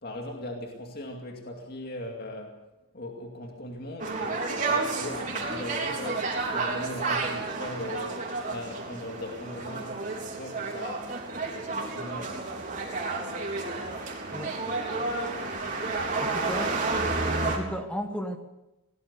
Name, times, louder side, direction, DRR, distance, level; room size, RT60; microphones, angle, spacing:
voice 1, 0.0-2.6 2.9-11.2 11.5-12.4, left 1 dB, 45° left, 2.4 m, -39 dB
sound 1, 4.0-17.6, right 3 dB, 35° right, 3.8 m, -31 dB
voice 2, 16.2-16.8 17.4-18.4, equal, 5° left, 1.4 m, -34 dB
22.5 x 18.5 x 6.9 m
head